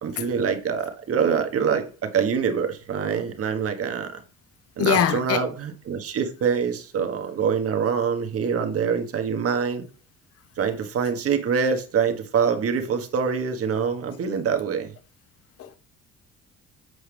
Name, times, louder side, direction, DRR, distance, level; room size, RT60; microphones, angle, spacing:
voice 1, 0.0-4.2 4.8-9.8 10.6-14.9, right 6 dB, 50° right, 1.3 m, -25 dB
voice 2, 4.8-5.4 15.6-15.8, left 8 dB, 50° left, 0.9 m, -23 dB
8.0 x 4.6 x 3.4 m
cardioid pair, 90°, 30 cm